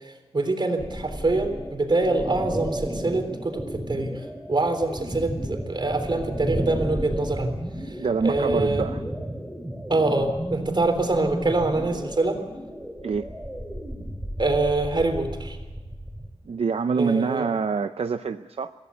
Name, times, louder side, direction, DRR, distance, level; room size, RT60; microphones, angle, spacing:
voice 1, 0.3-7.6 7.9-8.0 8.2-8.9 9.9-12.4 14.4-15.6 17.0-17.4, right 2 dB, 45° right, 6 dB, 3.6 m, -25 dB
sound 1, 0.8-16.3, equal, 10° right, 4.3 m, -33 dB
voice 2, 8.0-9.0 13.0-13.3 16.5-18.7, right 5 dB, 70° right, 9 dB, 0.6 m, -25 dB
24.0 x 16.0 x 8.4 m, 1.3 s
wide cardioid pair, 95°, 11 cm